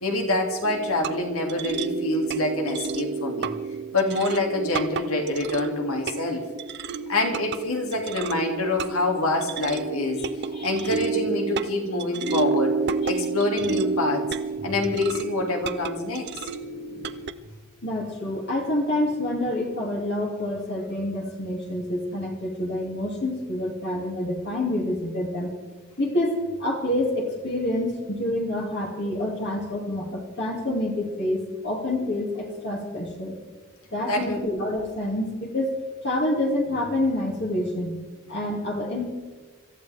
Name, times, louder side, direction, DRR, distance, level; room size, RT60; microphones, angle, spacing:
voice 1, 0.0-3.5 3.9-6.4 7.1-10.2 10.6-12.8 13.0-14.2 14.6-16.3 34.1-34.4, left 2 dB, 80° left, 2 dB, 2.7 m, -26 dB
sound 1, 0.6-17.3, right 4 dB, 50° right, 0.6 m, -31 dB
voice 2, 10.5-10.9 14.6-14.7 16.9-17.1 17.8-25.5 26.0-33.4 33.9-35.7 36.0-38.0 38.3-39.0, left 1 dB, 50° left, -1 dB, 2.7 m, -27 dB
25.5 x 13.5 x 3.6 m, 1.3 s
head